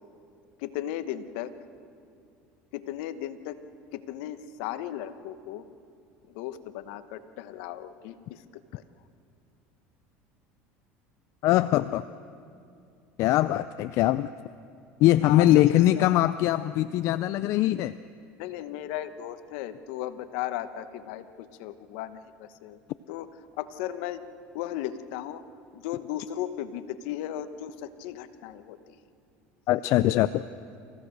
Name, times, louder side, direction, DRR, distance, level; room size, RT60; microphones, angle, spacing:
voice 1, 0.6-1.5 2.7-3.6 3.9-5.6 6.3-8.4 8.7-8.8 15.2-16.1 18.4-22.2 22.6-22.8 23.1-23.3 23.6-24.2 24.5-25.4 25.7-28.9, left 12 dB, 75° left, 12 dB, 1.1 m, -36 dB
voice 2, 11.4-12.0 13.2-14.3 15.0-17.9 29.7-30.4, left 14 dB, 60° left, 14 dB, 0.4 m, -22 dB
28.5 x 15.5 x 6.5 m, 2.4 s
supercardioid pair, 100°, 6 cm